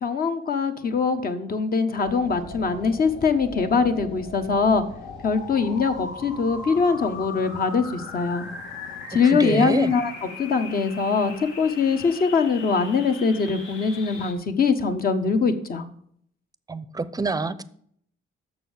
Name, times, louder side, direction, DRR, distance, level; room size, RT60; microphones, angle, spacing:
voice 1, 0.0-4.8 5.2-8.5 9.1-10.1 10.4-11.3 11.6-15.8, left 5 dB, 50° left, 7 dB, 1.1 m, -22 dB
sound 1, 2.0-14.3, left 3 dB, 75° left, 1.9 m, -39 dB
voice 2, 9.2-9.9 16.7-17.6, right 3 dB, 20° right, 16 dB, 0.6 m, -27 dB
6.8 x 6.4 x 7.2 m, 0.65 s
cardioid pair, 90°, 20 cm